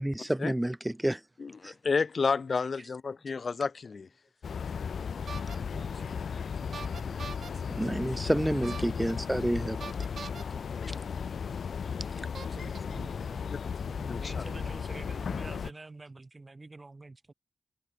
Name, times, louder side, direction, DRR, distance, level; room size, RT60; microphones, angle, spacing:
voice 1, 0.0-1.2 1.6-1.7 7.7-10.1, right 1 dB, 10° right, 1.2 m, -29 dB
voice 2, 1.4-4.1 10.7-11.1 14.1-14.4, left 5 dB, 55° left, 0.8 m, -31 dB
sound 1, 4.4-15.7, left 6 dB, 85° left, 0.4 m, -35 dB
sound 2, 5.3-5.6 6.7-7.5 8.6-9.1 9.8-10.4 11.5-11.6 12.3-12.8, right 6 dB, 75° right, 2.9 m, -42 dB
voice 3, 5.7-7.2 7.5-7.6 8.7-9.0 12.5-13.5 13.8-17.3, right 3 dB, 30° right, 3.7 m, -48 dB
wide cardioid pair, 115°, 0 cm